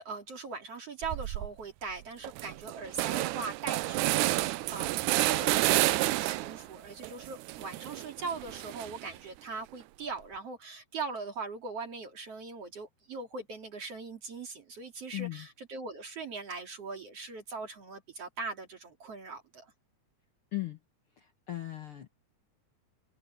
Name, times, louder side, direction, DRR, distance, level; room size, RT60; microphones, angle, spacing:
voice 1, 0.0-19.7, right 4 dB, 50° right, 3.3 m, -41 dB
sound 1, 1.0-1.5 1.9-2.0 2.2-6.7 7.0-9.2, right 18 dB, 85° right, 2.0 m, -30 dB
voice 2, 15.1-15.5 20.5-20.8 21.2-22.1, left 16 dB, 55° left, 1.9 m, -37 dB
omnidirectional pair, 3.5 m